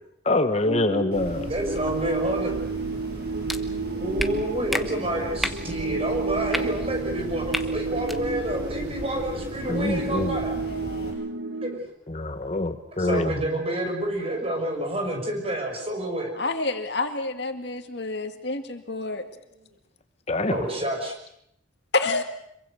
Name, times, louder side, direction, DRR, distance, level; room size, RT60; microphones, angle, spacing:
voice 1, 0.2-1.5 9.7-10.4 12.1-13.3 20.3-20.6, left 2 dB, 35° left, 9 dB, 1.0 m, -25 dB
sound 1, 0.6-11.8, right 3 dB, 80° right, 2.0 m, -32 dB
sound 2, 1.1-11.1, equal, 55° right, 7.4 m, -38 dB
voice 2, 1.4-2.6 3.9-10.5 11.6-11.8 13.0-16.3 19.1-19.2 20.5-21.1, right 1 dB, 30° right, 2 dB, 6.0 m, -29 dB
sound 3, 3.5-3.6 4.2-4.3 4.7-4.8 5.4-5.6 6.5-6.6 7.5-7.6 8.0-8.2, equal, ahead, 1.1 m, -28 dB
voice 3, 10.5-11.2 16.4-19.2 21.9-22.2, left 3 dB, 65° left, 6 dB, 2.1 m, -29 dB
26.0 x 23.0 x 6.7 m, 0.75 s
head